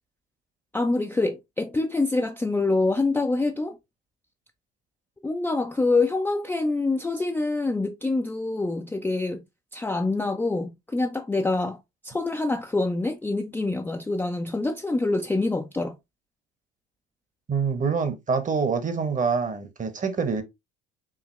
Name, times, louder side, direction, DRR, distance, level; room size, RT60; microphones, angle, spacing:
voice 1, 0.7-3.8 5.2-9.4 9.7-11.8 12.0-15.9, left 2 dB, 5° left, 0.4 m, -25 dB
voice 2, 17.5-20.4, right 5 dB, 25° right, 1.0 m, -26 dB
4.9 x 2.7 x 3.1 m
figure-of-eight pair, 60°, 31 cm